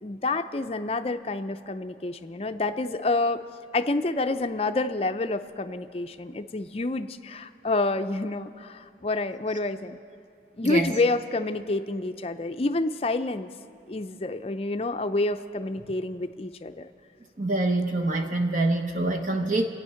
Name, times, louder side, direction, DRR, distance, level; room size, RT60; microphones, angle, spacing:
voice 1, 0.0-3.4 3.7-10.0 10.6-13.5 13.9-16.9, left 2 dB, 35° left, 9 dB, 0.5 m, -28 dB
voice 2, 17.4-19.7, right 2 dB, 45° right, 4 dB, 1.0 m, -25 dB
27.0 x 9.3 x 5.7 m, 2.5 s
head